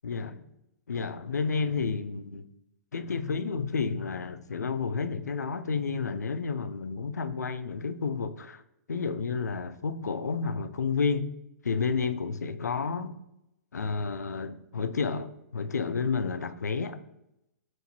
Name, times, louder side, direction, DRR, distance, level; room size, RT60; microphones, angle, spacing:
voice 1, 0.0-0.4 0.9-2.5 2.9-8.6 8.9-11.3 11.6-13.1 13.7-17.0, left 5 dB, 80° left, 0.4 m, -31 dB
5.8 x 2.6 x 2.9 m
figure-of-eight pair, 120°, 9 cm